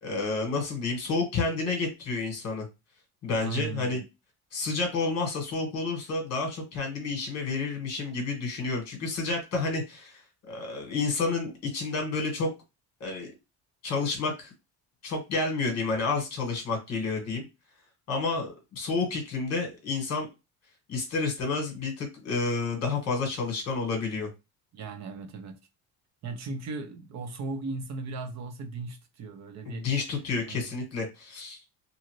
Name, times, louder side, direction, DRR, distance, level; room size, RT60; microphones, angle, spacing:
voice 1, 0.0-2.7 3.2-4.0 4.5-10.2 10.5-12.5 13.0-13.3 13.8-14.5 15.0-17.4 18.1-20.3 20.9-24.3 29.6-31.6, left 4 dB, 40° left, 1.4 m, -30 dB
voice 2, 3.4-4.0 24.7-25.6 26.2-29.9 30.5-30.6, right 3 dB, 45° right, 0.6 m, -37 dB
2.7 x 2.5 x 3.0 m
cardioid pair, 175°, 40 cm